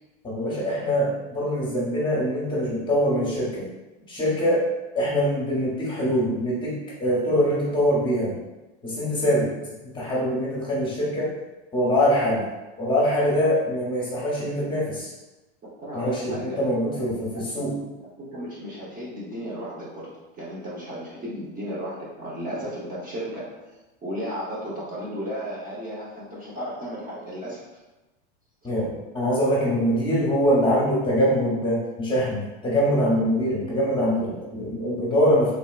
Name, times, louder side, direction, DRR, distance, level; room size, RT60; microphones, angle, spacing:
voice 1, 0.2-3.7 4.1-4.6 4.9-6.7 7.0-8.4 8.8-9.5 9.8-11.3 11.7-12.4 12.8-15.1 15.9-17.7 28.6-35.5, equal, 15° left, -6 dB, 1.0 m, -23 dB
voice 2, 15.8-16.7 16.9-20.1 20.4-23.6 24.0-27.6, equal, 25° right, -7 dB, 0.9 m, -34 dB
3.4 x 2.7 x 2.4 m, 1.1 s
supercardioid pair, 115°, 33 cm